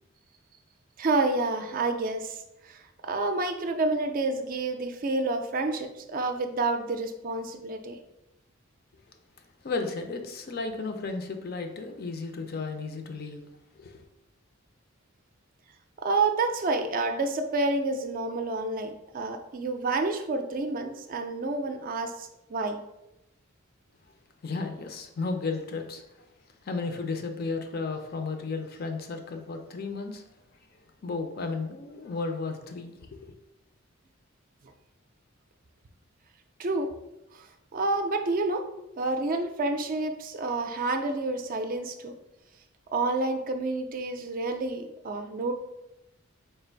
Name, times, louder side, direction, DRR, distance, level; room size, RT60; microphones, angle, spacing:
voice 1, 1.0-8.0 16.0-22.8 36.6-36.9 37.3-37.5 37.7-38.6 39.0-42.1 42.9-45.5, right 3 dB, 40° right, 6 dB, 0.4 m, -29 dB
voice 2, 9.6-13.5 13.8-14.0 24.4-26.2 26.6-30.2 31.0-33.3, left 3 dB, 50° left, 6 dB, 0.5 m, -34 dB
3.3 x 2.5 x 4.5 m, 0.88 s
head